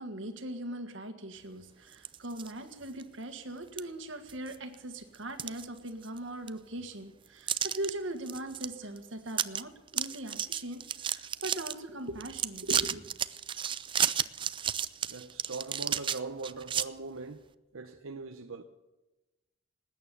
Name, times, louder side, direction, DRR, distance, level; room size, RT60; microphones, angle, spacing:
voice 1, 0.0-13.0, right 1 dB, 65° right, 1.7 m, -40 dB
sound 1, 1.9-2.5 3.0-3.1 3.8-3.9 4.3-4.8 5.1-6.2 6.5-6.6 7.5-7.9 8.3-8.7 9.0-9.1 9.3-9.6 9.9-11.7 12.2-16.9, right 9 dB, 25° right, 0.4 m, -32 dB
voice 2, 15.1-17.4 17.7-18.6, right 3 dB, 85° right, 0.8 m, -41 dB
19.5 x 9.2 x 7.0 m
head